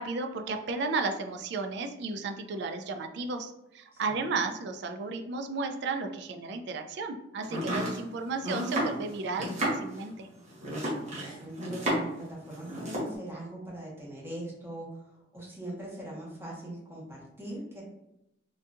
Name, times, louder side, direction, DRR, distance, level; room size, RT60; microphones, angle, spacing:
voice 1, 0.0-10.3, right 3 dB, 65° right, 6 dB, 0.4 m, -34 dB
voice 2, 3.9-4.3 10.9-17.8, right 1 dB, 15° right, -6 dB, 1.2 m, -41 dB
Domestic sounds home sounds, 7.4-12.2 12.5-13.1, right 1 dB, 40° right, 1.1 m, -32 dB
3.7 x 2.7 x 2.4 m, 0.86 s
head